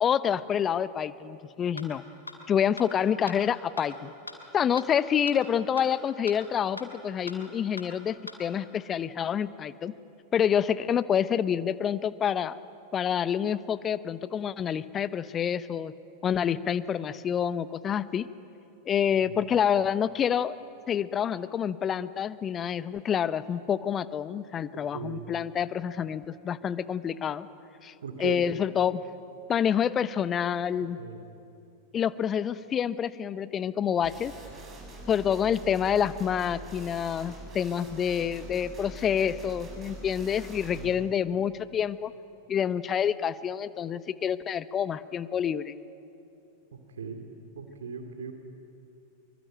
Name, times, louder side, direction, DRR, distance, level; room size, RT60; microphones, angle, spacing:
voice 1, 0.0-2.0 2.5-4.1 4.5-9.9 10.3-12.5 12.9-15.9 16.2-18.3 18.9-20.6 20.9-27.5 27.8-27.9 28.2-29.0 29.5-31.0 31.9-34.3 35.1-42.1 42.5-45.7, left 8 dB, 25° left, 16 dB, 0.8 m, -27 dB
sound 1, 1.8-1.9 2.3-2.4 2.8-2.9 3.3-3.4 3.8-3.9 4.3-4.4 4.8-4.9 5.3-5.4 5.8-5.9 6.3-6.4 6.8-6.9 7.3-7.4 7.8-7.9 8.3-8.4, left 2 dB, 80° left, 2.6 m, -39 dB
voice 2, 24.7-25.2 28.0-28.4 31.0-31.2 40.7-40.9 47.0-47.2 47.5-48.3, right 6 dB, 65° right, 5 dB, 2.5 m, -38 dB
sound 2, 34.0-40.9, right 3 dB, 25° right, 7.9 m, -44 dB
25.0 x 24.0 x 9.1 m, 2.8 s
figure-of-eight pair, 90°, 0 cm